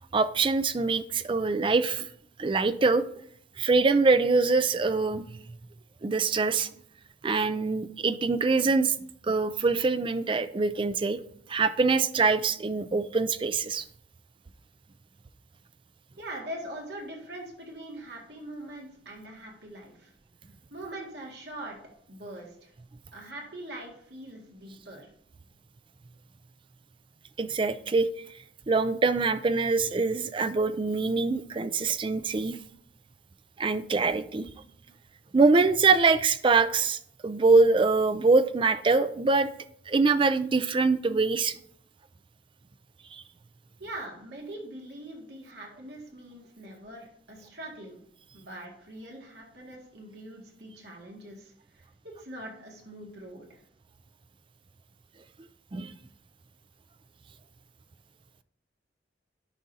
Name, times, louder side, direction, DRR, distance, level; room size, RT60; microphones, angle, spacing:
voice 1, 0.1-2.1 2.4-3.0 3.6-5.4 6.0-6.7 7.2-8.9 9.2-11.2 11.5-13.8 27.4-28.1 28.7-32.6 33.6-34.5 35.3-39.5 39.9-41.6 43.1-43.2 48.4-48.5 55.7-55.9, right 4 dB, 30° right, 12 dB, 0.4 m, -24 dB
voice 2, 16.2-20.1 20.7-21.8 22.1-22.7 23.1-25.1 43.8-48.0 48.3-53.6, right 1 dB, 65° right, -1 dB, 2.1 m, -42 dB
11.5 x 5.0 x 2.8 m, 0.67 s
head